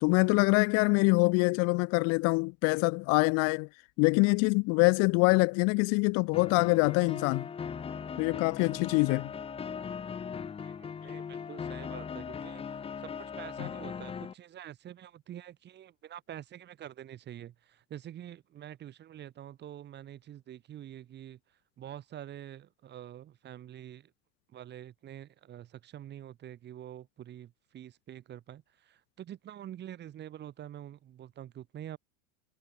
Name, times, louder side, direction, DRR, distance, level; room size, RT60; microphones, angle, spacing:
voice 1, 0.0-3.7 4.0-7.5 8.2-9.3 13.6-13.7, left 30 dB, 45° left, 0.8 m, -25 dB
sound 1, 6.3-14.3, left 6 dB, 15° left, 1.5 m, -39 dB
voice 2, 10.6-21.4 21.8-24.1 24.5-32.0, right 11 dB, 30° right, 3.4 m, -46 dB
supercardioid pair, 145°, 35 cm